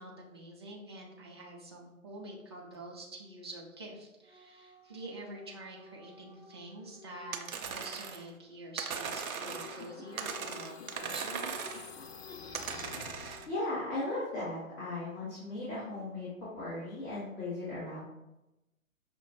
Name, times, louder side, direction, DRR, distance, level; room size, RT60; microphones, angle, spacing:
voice 1, 0.0-11.5, right 1 dB, 20° right, -2 dB, 0.3 m, -46 dB
Dog / Siren, 4.2-7.5 8.9-14.1 15.7-16.1, left 5 dB, ahead, 0.8 m, -56 dB
sound 1, 7.3-8.3 8.8-9.9 10.2-11.9 12.5-13.5, right 6 dB, 80° right, 0.6 m, -39 dB
sound 2, 9.4-13.6, left 5 dB, 50° left, 0.5 m, -49 dB
voice 2, 13.5-18.0, left 2 dB, 30° left, -10 dB, 1.3 m, -37 dB
5.6 x 2.2 x 2.8 m, 0.97 s
figure-of-eight pair, 125°, 42 cm